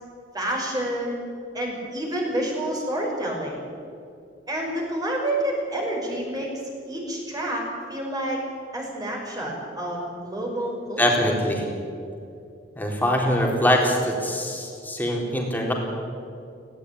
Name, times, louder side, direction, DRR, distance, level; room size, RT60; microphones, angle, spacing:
voice 1, 0.3-1.2 1.5-3.7 4.5-6.5 6.9-8.4 8.7-11.3, right 1 dB, 20° right, -1 dB, 5.5 m, -28 dB
voice 2, 11.0-11.6 12.8-15.7, equal, 10° left, 0 dB, 3.9 m, -23 dB
17.5 x 17.0 x 10.0 m, 2.6 s
head